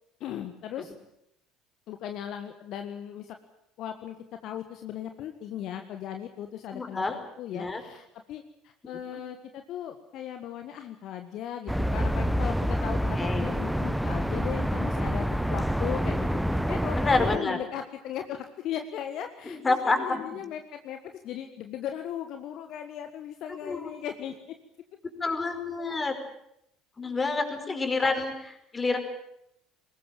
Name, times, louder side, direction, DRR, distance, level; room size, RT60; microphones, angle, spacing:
voice 1, 0.2-0.9 1.9-3.4 3.8-4.1 4.4-24.6 27.3-28.3, left 10 dB, 55° left, 7 dB, 1.5 m, -37 dB
voice 2, 6.7-7.2 7.5-7.8 13.2-13.6 17.0-17.6 19.5-20.4 23.6-23.9 25.2-26.1 27.0-29.0, left 3 dB, 25° left, 7 dB, 4.9 m, -28 dB
sound 1, 11.7-17.4, equal, ahead, 1.1 m, -27 dB
21.5 x 19.5 x 9.1 m, 0.77 s
figure-of-eight pair, 60°, 0 cm